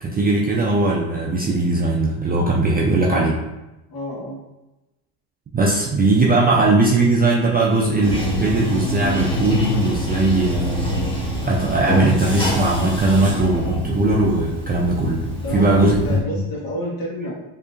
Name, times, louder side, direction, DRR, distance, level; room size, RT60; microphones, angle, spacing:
voice 1, 0.0-3.4 5.5-11.1 11.4-16.2, right 2 dB, 25° right, -2 dB, 0.3 m, -19 dB
voice 2, 3.9-4.4 15.4-17.3, equal, 50° left, -3 dB, 1.5 m, -29 dB
Bathtub (filling or washing), 8.0-16.2, equal, 10° left, 0.9 m, -26 dB
4.5 x 2.9 x 2.5 m, 0.99 s
cardioid pair, 110°, 45 cm